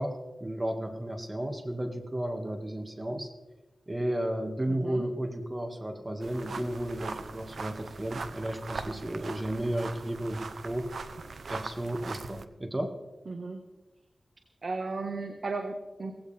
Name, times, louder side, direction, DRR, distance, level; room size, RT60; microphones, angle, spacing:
voice 1, 0.0-3.3 3.9-10.9 11.5-13.0, right 1 dB, 25° right, 4 dB, 2.0 m, -33 dB
voice 2, 4.7-5.1 13.3-13.6 14.6-16.1, right 3 dB, 65° right, 4 dB, 1.4 m, -35 dB
sound 1, 6.2-12.5, right 4 dB, 90° right, 0.7 m, -41 dB
17.5 x 16.5 x 3.5 m, 1.1 s
wide cardioid pair, 65°, 0 cm